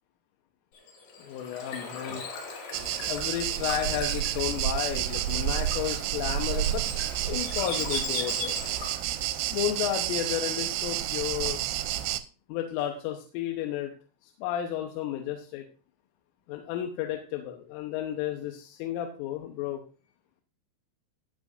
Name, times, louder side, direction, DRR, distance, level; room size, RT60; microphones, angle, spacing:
Bird / Water, 0.7-9.2, left 4 dB, 60° left, 4.7 m, -39 dB
voice 1, 1.2-2.2 3.1-6.8 7.1-8.6 9.5-11.6 12.5-13.9 14.2-15.6 16.5-19.8, left 11 dB, 85° left, 3 dB, 3.4 m, -32 dB
sound 1, 2.7-12.2, right 13 dB, 85° right, 2.7 m, -30 dB
18.0 x 6.4 x 2.6 m, 0.34 s
omnidirectional pair, 5.8 m